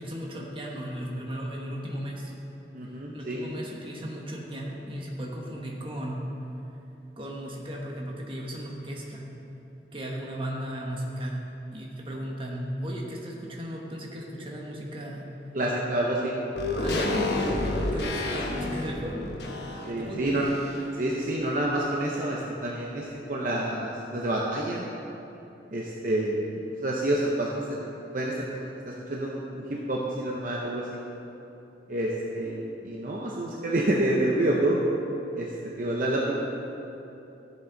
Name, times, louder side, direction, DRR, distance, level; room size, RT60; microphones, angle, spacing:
voice 1, 0.0-2.3 3.1-6.2 7.2-9.3 9.9-11.4 11.7-15.3 16.8-19.3 20.0-20.5, equal, 30° right, -2 dB, 1.4 m, -35 dB
voice 2, 2.7-3.5 15.5-16.4 19.9-20.4 21.0-24.9 25.7-26.4 26.8-31.0 31.9-34.8 35.3-35.5 35.8-36.4, right 1 dB, 50° right, -3 dB, 0.8 m, -28 dB
sound 1, 16.5-21.0 21.3-21.4, left 2 dB, 70° left, 1.1 m, -30 dB
14.0 x 7.5 x 4.0 m, 3.0 s
head